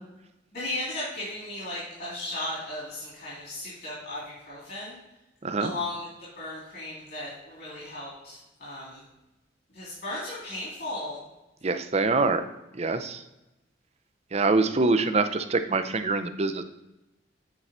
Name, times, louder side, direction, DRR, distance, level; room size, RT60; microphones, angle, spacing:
voice 1, 0.5-5.0 5.6-6.1 6.4-9.0 9.7-11.2, left 1 dB, 55° left, -8 dB, 3.1 m, -36 dB
voice 2, 11.6-12.4 12.7-13.2 14.3-16.6, right 3 dB, 35° right, 9 dB, 0.5 m, -25 dB
9.0 x 4.7 x 4.2 m, 0.96 s
head